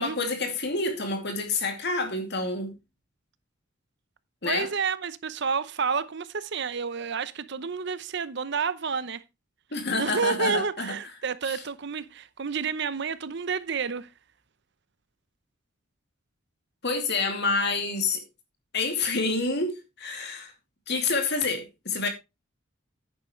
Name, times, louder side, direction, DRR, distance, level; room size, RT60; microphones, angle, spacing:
voice 1, 0.0-2.7 4.4-4.7 9.7-10.9 11.5-11.6 16.8-18.2 18.7-20.5 20.9-22.1, left 3 dB, 55° left, 2.5 m, -28 dB
voice 2, 4.4-9.2 10.0-14.1, right 5 dB, 55° right, 0.7 m, -30 dB
10.5 x 9.5 x 3.2 m
head